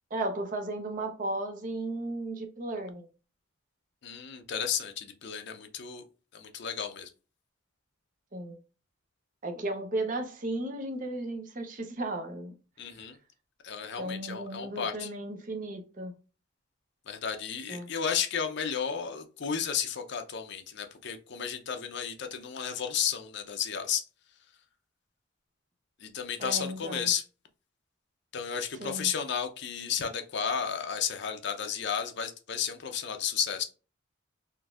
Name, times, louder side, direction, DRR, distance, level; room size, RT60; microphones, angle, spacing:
voice 1, 0.1-3.1 8.3-8.6 9.4-12.5 12.9-13.0 14.0-16.1 17.7-17.9 26.4-27.1 28.8-29.1, right 2 dB, 40° right, 0.6 m, -35 dB
voice 2, 4.0-6.0 6.3-7.1 12.8-13.2 13.6-15.1 17.1-24.0 26.0-27.2 28.3-33.6, left 7 dB, 60° left, 0.5 m, -33 dB
3.8 x 2.6 x 2.3 m
head